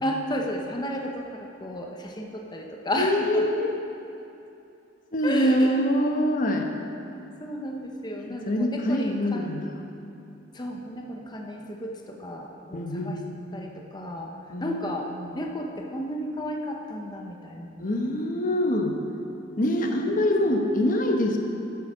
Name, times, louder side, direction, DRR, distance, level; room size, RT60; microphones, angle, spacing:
voice 1, 0.0-3.7 5.2-5.9 7.4-9.5 10.5-13.2 13.5-14.3 14.6-15.1 15.3-18.0 20.1-20.3, equal, 25° left, 1 dB, 0.9 m, -33 dB
voice 2, 3.0-3.7 5.1-6.7 8.3-9.7 12.7-13.2 14.5-15.3 17.8-19.0 19.6-21.4, left 1 dB, 45° left, 2 dB, 1.1 m, -24 dB
9.8 x 8.4 x 6.2 m, 2.8 s
head